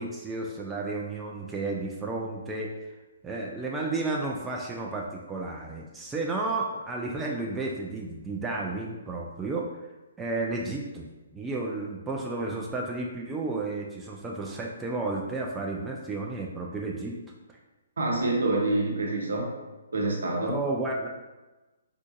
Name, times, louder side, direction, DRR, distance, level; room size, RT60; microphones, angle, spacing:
voice 1, 0.0-2.7 3.2-9.7 10.2-17.2 20.4-21.1, right 3 dB, 10° right, -2 dB, 0.3 m, -32 dB
voice 2, 18.0-19.5 19.9-20.6, right 2 dB, 70° right, -1 dB, 0.8 m, -26 dB
3.7 x 2.4 x 2.5 m, 1.1 s
figure-of-eight pair, 130°, 0 cm